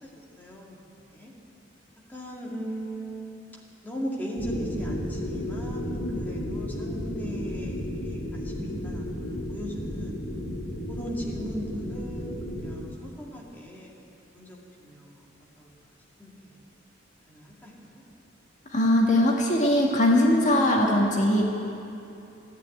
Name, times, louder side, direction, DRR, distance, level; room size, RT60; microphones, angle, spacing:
voice 1, 0.4-1.3 2.1-3.3 3.8-9.0 9.5-10.2 10.9-13.9 14.3-15.2 15.6-15.7 16.2-16.6 17.3-18.0, equal, 10° left, -3 dB, 2.1 m, -38 dB
sound 1, 4.4-12.8, left 1 dB, 90° left, 2.5 m, -33 dB
voice 2, 18.7-21.5, left 1 dB, 40° left, -1 dB, 1.5 m, -21 dB
14.0 x 9.3 x 9.1 m, 2.7 s
head